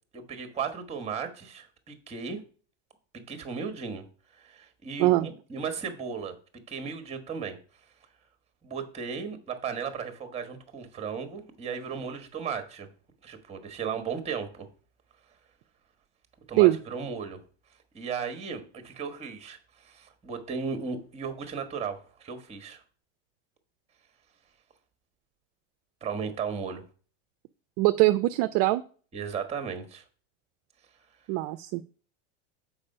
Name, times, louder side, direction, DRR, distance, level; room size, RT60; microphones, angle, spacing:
voice 1, 0.1-2.4 3.1-4.0 4.3-6.4 6.7-7.6 8.6-12.9 13.2-14.7 16.5-17.4 17.9-22.8 26.0-26.8 29.1-30.0, right 6 dB, 15° right, 8 dB, 1.3 m, -35 dB
voice 2, 27.8-28.8 31.3-31.8, right 18 dB, 45° right, 10 dB, 0.4 m, -22 dB
7.1 x 4.7 x 5.4 m, 0.41 s
supercardioid pair, 140°, 36 cm